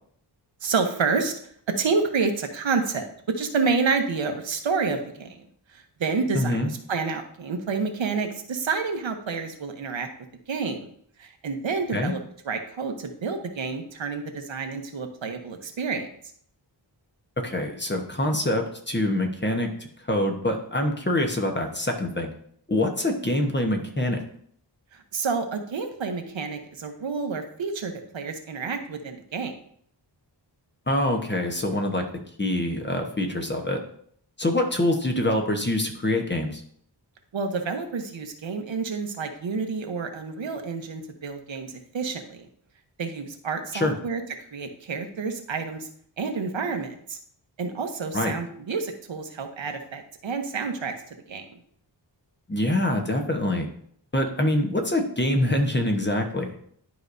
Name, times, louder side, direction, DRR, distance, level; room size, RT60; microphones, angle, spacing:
voice 1, 0.6-1.3 1.8-3.1 3.3-5.4 5.7-10.1 10.5-10.9 11.2-12.2 12.4-16.1 24.9-29.5 37.3-42.5 43.0-44.2 44.5-45.9 46.2-47.2 47.6-50.9 51.3-51.4, right 4 dB, 85° right, 5 dB, 1.0 m, -29 dB
voice 2, 6.3-6.7 11.9-12.1 17.4-19.7 20.1-22.3 22.7-24.2 30.9-32.0 32.4-33.8 34.4-36.6 43.7-44.0 48.1-48.3 52.5-53.7 54.1-56.5, left 1 dB, 25° left, 3 dB, 1.1 m, -25 dB
11.0 x 4.8 x 2.6 m, 0.65 s
wide cardioid pair, 90°, 44 cm